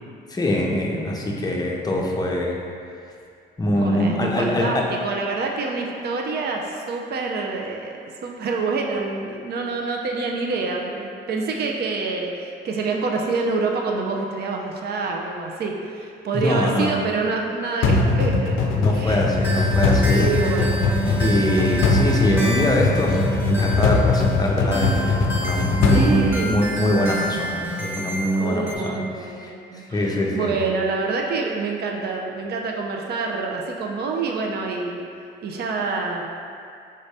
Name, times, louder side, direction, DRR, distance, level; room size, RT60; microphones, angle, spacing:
voice 1, 0.3-2.6 3.6-4.9 16.3-17.0 18.7-20.3 21.2-29.0 29.4-29.5 29.9-30.5, left 1 dB, 20° left, -1 dB, 0.6 m, -23 dB
voice 2, 3.7-19.4 20.2-21.2 25.9-26.6 28.4-35.1 35.4-36.3, right 4 dB, 55° right, 1 dB, 0.5 m, -27 dB
sound 1, 17.8-27.0, left 3 dB, 85° left, 0.4 m, -21 dB
sound 2, 19.4-28.8, right 2 dB, 10° right, 0.9 m, -29 dB
5.3 x 2.6 x 3.3 m, 2.4 s
cardioid pair, 90°, 20 cm